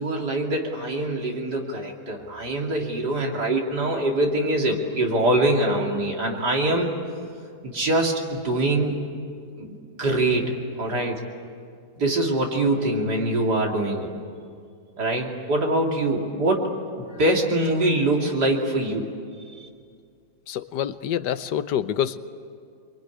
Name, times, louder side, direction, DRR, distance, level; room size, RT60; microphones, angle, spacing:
voice 1, 0.0-6.9 7.6-9.0 9.6-11.2 12.0-14.1 15.0-16.7 17.0-19.1 19.5-19.7, right 1 dB, 75° right, 0 dB, 3.3 m, -24 dB
voice 2, 20.5-22.2, left 10 dB, 85° left, 12 dB, 1.5 m, -26 dB
24.5 x 23.5 x 9.8 m, 2.2 s
omnidirectional pair, 1.8 m